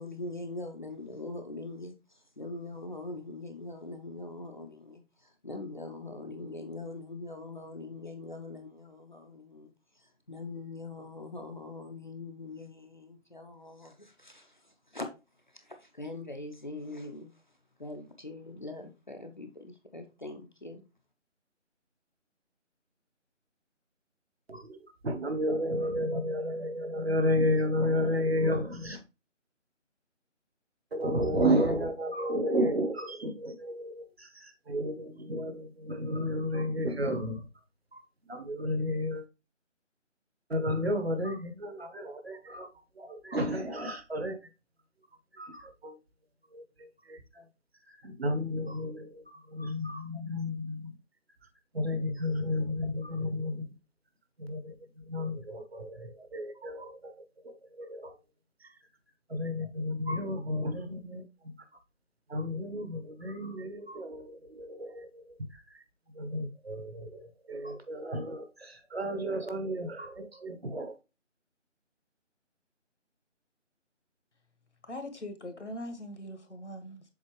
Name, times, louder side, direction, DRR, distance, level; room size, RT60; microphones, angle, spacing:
voice 1, 0.0-15.1 15.5-17.3 17.8-20.8, left 2 dB, 40° left, 0.7 m, -42 dB
voice 2, 25.0-29.0 30.9-37.5 37.9-39.2 40.5-42.7 43.0-44.5 45.3-46.0 46.5-47.5 47.9-50.9 51.7-53.7 54.4-58.1 58.6-58.7 59.3-61.5 62.3-65.8 66.1-70.9, equal, 55° right, 1.2 m, -32 dB
voice 3, 74.8-77.0, left 1 dB, 65° left, 1.5 m, -41 dB
7.2 x 4.2 x 3.1 m
figure-of-eight pair, 160°, 38 cm